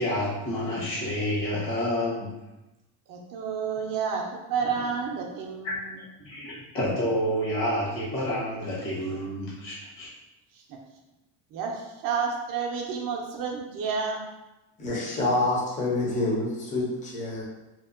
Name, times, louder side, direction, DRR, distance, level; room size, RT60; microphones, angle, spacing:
voice 1, 0.0-2.3 5.6-5.8 6.2-10.1, equal, 70° left, -6 dB, 1.3 m, -29 dB
voice 2, 3.1-5.9 10.7-10.8 11.5-14.2, right 5 dB, 50° right, 0 dB, 0.4 m, -30 dB
voice 3, 14.8-17.4, left 2 dB, 15° left, -5 dB, 0.5 m, -27 dB
2.7 x 2.1 x 2.4 m, 1.0 s
cardioid pair, 145°, 46 cm